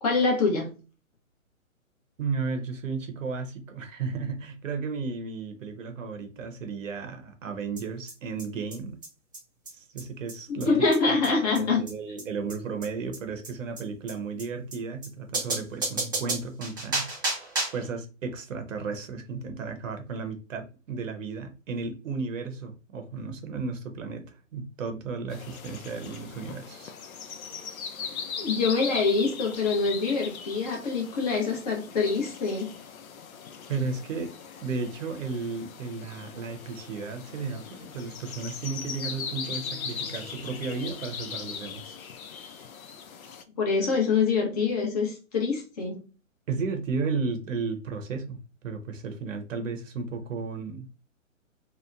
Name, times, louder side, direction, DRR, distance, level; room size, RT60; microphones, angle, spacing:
voice 1, 0.0-0.7 10.5-11.8 28.4-32.7 43.6-46.0, left 4 dB, 30° left, 0.7 m, -25 dB
voice 2, 2.2-9.0 9.7-10.7 11.4-17.1 17.7-26.9 33.7-34.3 34.6-42.0 46.5-50.8, right 4 dB, 65° right, 0.7 m, -34 dB
sound 1, 7.8-7.9 8.1-8.2 8.4-8.5 8.7-8.8 9.0-9.1 9.3-9.4 9.7-9.8 10.0-10.1 10.3-10.4 10.6-10.7 10.9-11.0 11.2-11.3 11.6-11.7 11.9-12.0 12.2-12.3 12.5-12.6 12.8-12.9 13.1-13.2 13.4-13.5 13.8-13.9 14.1-14.2 14.4-14.5 14.7-14.8 15.0-15.1 15.3-17.9, right 2 dB, 15° right, 0.4 m, -31 dB
sound 2, 25.3-43.4, left 6 dB, 85° left, 0.5 m, -39 dB
2.9 x 2.1 x 2.3 m
hypercardioid pair, 135°, 41 cm